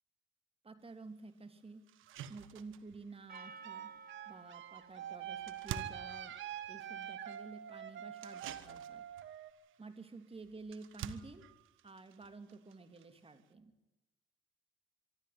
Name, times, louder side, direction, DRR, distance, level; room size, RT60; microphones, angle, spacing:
voice 1, 0.6-1.9 2.3-3.9 4.3-6.3 6.7-9.0 9.8-11.5 11.8-13.7, right 3 dB, 30° right, 9 dB, 2.8 m, -51 dB
sound 1, 0.9-1.0 1.4-1.5 1.9-13.5, right 9 dB, 90° right, 1.4 m, -51 dB
Percussion, 3.3-7.8, right 5 dB, 50° right, 1.8 m, -56 dB
sound 2, 3.3-9.5, right 10 dB, 70° right, 1.9 m, -45 dB
25.0 x 13.0 x 9.5 m, 1.0 s
cardioid pair, 90°, 20 cm